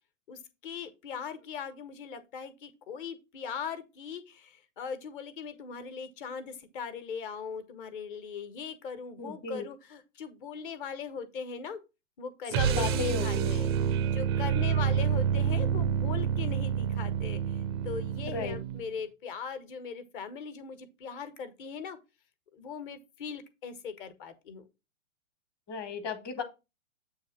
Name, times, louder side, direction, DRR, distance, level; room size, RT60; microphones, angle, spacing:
voice 1, 0.3-11.8 12.2-22.0 22.5-24.6, left 6 dB, 40° left, 1.4 m, -40 dB
voice 2, 9.2-9.6 12.6-13.5 18.3-18.6 25.7-26.4, left 5 dB, 25° left, 1.4 m, -34 dB
sound 1, 12.5-19.0, right 8 dB, 20° right, 0.4 m, -28 dB
8.4 x 2.9 x 6.1 m
hypercardioid pair, 120°, 39 cm